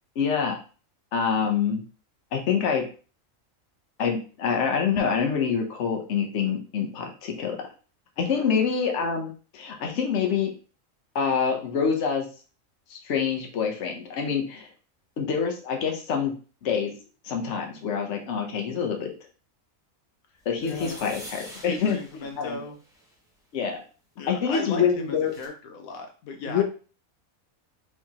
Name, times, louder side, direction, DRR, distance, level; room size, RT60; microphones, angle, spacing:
voice 1, 0.2-0.6 1.1-1.8 2.3-2.8 4.0-7.6 8.2-10.5 11.1-12.3 12.9-14.7 15.2-16.3 16.6-16.9 17.2-19.1 20.4-22.0 22.4-22.6 23.5-23.8 24.3-25.3 26.5-26.6, left 6 dB, 60° left, 3 dB, 1.2 m, -26 dB
sound 1, 20.5-23.1 24.8-24.9 25.1-25.5, equal, 5° right, 0.9 m, -45 dB
voice 2, 20.6-21.0 21.6-22.8 24.2-26.6, left 3 dB, 90° left, 3 dB, 1.3 m, -37 dB
4.6 x 3.5 x 2.9 m, 0.37 s
omnidirectional pair, 1.4 m